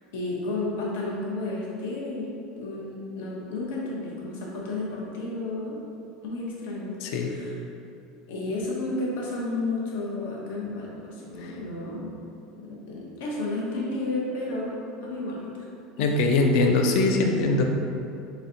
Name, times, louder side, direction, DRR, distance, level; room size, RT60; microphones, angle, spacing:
voice 1, 0.1-5.8 6.2-7.5 8.3-12.1 12.6-15.6 16.0-16.1, left 2 dB, 80° left, -4 dB, 0.9 m, -32 dB
voice 2, 7.0-7.3 11.4-11.6 16.0-17.6, left 3 dB, 55° left, 3 dB, 0.4 m, -22 dB
4.0 x 3.1 x 2.9 m, 2.6 s
cardioid pair, 170°, 0 cm